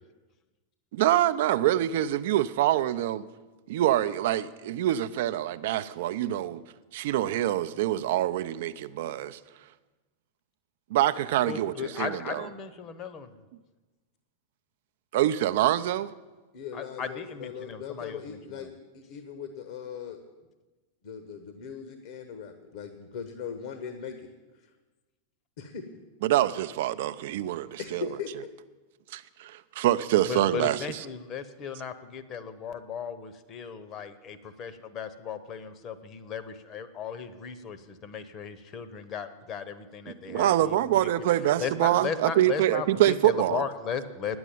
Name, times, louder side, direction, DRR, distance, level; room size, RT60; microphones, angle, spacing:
voice 1, 0.9-3.3 3.7-6.6 6.9-9.4 10.9-12.4 15.1-16.1 26.2-28.1 29.1-30.8 40.1-43.6, right 13 dB, 55° right, 0.5 m, -25 dB
voice 2, 11.4-13.4 16.7-18.7 30.3-41.3 41.6-44.4, left 6 dB, 35° left, 0.9 m, -36 dB
voice 3, 16.5-18.7 18.9-20.2 21.0-24.3 25.6-25.8 27.8-28.3, left 7 dB, 55° left, 1.0 m, -39 dB
9.8 x 7.9 x 9.3 m
figure-of-eight pair, 90°, 0 cm